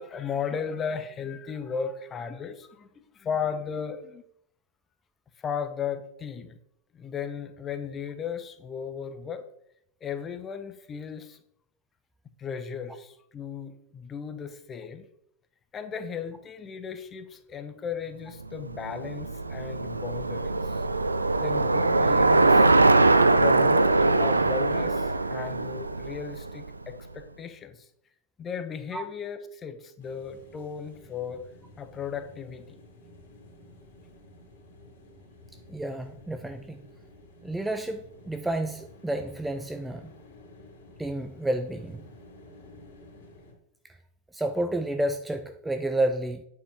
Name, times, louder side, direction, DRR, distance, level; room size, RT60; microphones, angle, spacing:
voice 1, 0.0-2.9 3.1-4.2 5.4-6.6 6.9-9.5 10.0-11.4 12.4-15.0 15.7-20.6 21.4-22.7 23.4-23.9 24.2-27.8 28.4-31.4 31.8-32.8, left 6 dB, 25° left, 1.0 m, -35 dB
Bicycle, 18.6-26.9, right 2 dB, 80° right, 0.4 m, -22 dB
sound 1, 30.0-43.5, left 1 dB, 55° left, 3.0 m, -52 dB
voice 2, 35.7-36.8 37.4-40.1 41.0-42.1 43.9-44.0 44.3-46.4, right 1 dB, 5° right, 0.5 m, -30 dB
9.0 x 7.1 x 3.5 m
figure-of-eight pair, 90°, 0 cm